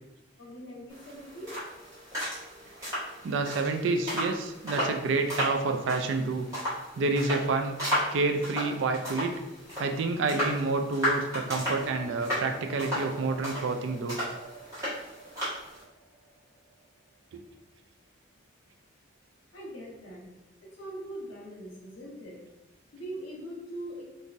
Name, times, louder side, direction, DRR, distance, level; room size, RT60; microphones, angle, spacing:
voice 1, 0.4-1.5 19.5-20.3 20.7-22.4 22.9-24.1, right 1 dB, 65° left, -4 dB, 1.1 m, -41 dB
sound 1, 0.9-15.8, equal, 15° right, 1.4 m, -35 dB
voice 2, 3.2-6.5 6.9-7.8 8.1-9.3 9.8-14.2 17.3-17.4, right 3 dB, 60° right, 6 dB, 0.3 m, -28 dB
sound 2, 11.3-17.2, right 4 dB, 10° left, 1.3 m, -48 dB
3.7 x 2.6 x 2.5 m, 0.97 s
head